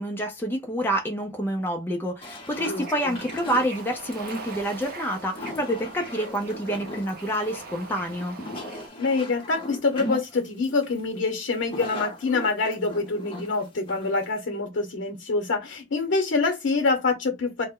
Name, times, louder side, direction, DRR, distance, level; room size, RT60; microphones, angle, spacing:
voice 1, 0.0-8.4, equal, 10° left, 0.4 m, -28 dB
sound 1, 2.2-14.3, left 1 dB, 30° left, 0.8 m, -39 dB
Bird / Ocean, 2.5-8.9, right 3 dB, 50° right, 0.6 m, -41 dB
voice 2, 2.6-3.1 9.0-17.7, left 3 dB, 85° left, 0.7 m, -26 dB
2.1 x 2.1 x 3.5 m
head